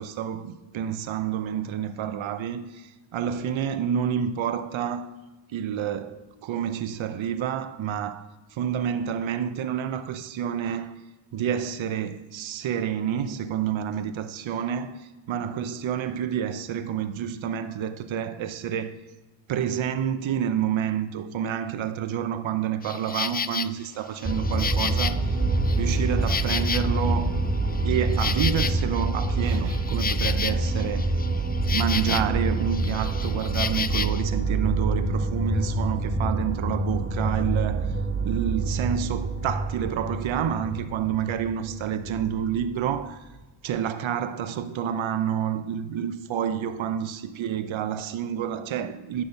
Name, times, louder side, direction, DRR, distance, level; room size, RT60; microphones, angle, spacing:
voice 1, 0.0-5.1 5.5-11.0 11.3-19.0 19.5-25.4 25.7-27.3 27.8-31.2 31.7-38.0 38.2-43.3 43.6-49.2, right 9 dB, 80° right, 0.7 m, -29 dB
Insect, 22.8-23.7 24.2-27.2 27.6-32.4 32.7-34.2, left 6 dB, 25° left, 0.3 m, -32 dB
sound 1, 24.2-43.0, right 2 dB, 25° right, 1.3 m, -26 dB
10.5 x 4.1 x 6.7 m
cardioid pair, 65°, 47 cm